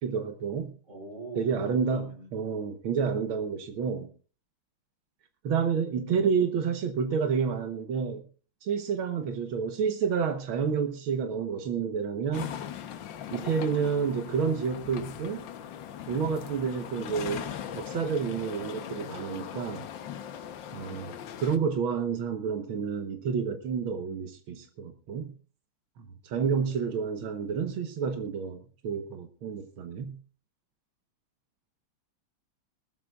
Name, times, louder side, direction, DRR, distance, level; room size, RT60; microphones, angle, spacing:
voice 1, 0.0-0.7 1.4-2.1 2.3-4.1 5.4-8.2 8.6-12.5 13.3-15.4 16.1-19.9 20.7-21.1 21.4-25.3 26.0-30.2, right 6 dB, 85° right, 6 dB, 1.9 m, -29 dB
voice 2, 0.9-2.3 26.3-27.0, right 2 dB, 35° right, 2 dB, 3.8 m, -44 dB
sound 1, 12.3-21.6, left 9 dB, 75° left, 1.6 m, -40 dB
21.0 x 13.5 x 2.4 m, 0.36 s
omnidirectional pair, 2.2 m